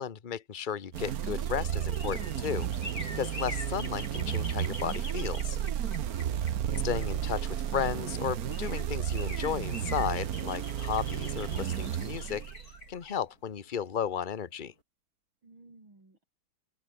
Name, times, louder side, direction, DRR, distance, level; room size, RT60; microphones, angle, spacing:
voice 1, 0.0-2.7 3.2-5.6 6.8-12.4 12.9-14.7, left 8 dB, 30° left, 1.0 m, -34 dB
sound 1, 0.8-7.6 8.2-8.3 8.5-14.3 14.6-14.7, left 2 dB, 50° left, 8.0 m, -46 dB
sound 2, 0.9-12.9, right 10 dB, 55° right, 1.3 m, -33 dB
voice 2, 15.4-16.2, right 2 dB, 85° right, 7.9 m, -57 dB
open air
omnidirectional pair, 2.1 m